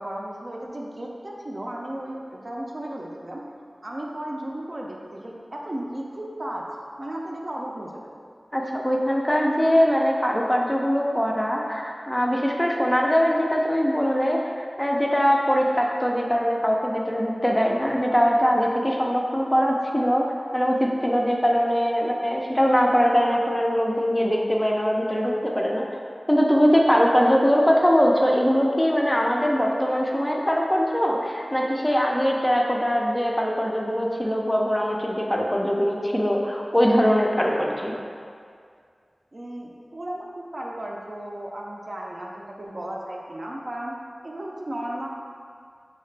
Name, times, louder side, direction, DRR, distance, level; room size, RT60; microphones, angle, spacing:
voice 1, 0.0-3.4 3.8-6.6 7.0-8.1 39.3-43.9 44.2-45.1, right 1 dB, 50° right, -2 dB, 0.4 m, -34 dB
voice 2, 8.5-14.4 14.8-20.3 20.5-25.9 26.3-38.0, equal, 10° left, -1 dB, 0.4 m, -22 dB
3.2 x 2.8 x 3.2 m, 2.1 s
wide cardioid pair, 50°, 0 cm